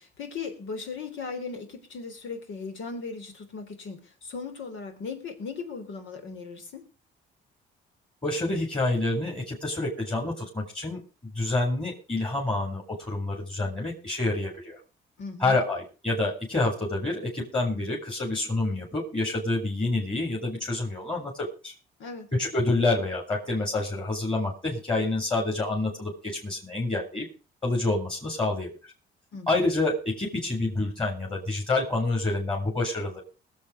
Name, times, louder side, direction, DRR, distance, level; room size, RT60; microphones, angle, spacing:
voice 1, 0.0-6.8 15.2-15.6 22.0-22.3 29.3-29.6, left 4 dB, 80° left, 6 dB, 3.7 m, -38 dB
voice 2, 8.2-11.0 11.3-14.8 15.4-21.7 22.4-27.3 27.6-28.9 29.5-33.2, left 2 dB, 25° left, 0 dB, 4.4 m, -28 dB
21.0 x 7.5 x 5.1 m, 0.34 s
cardioid pair, 90°, 20 cm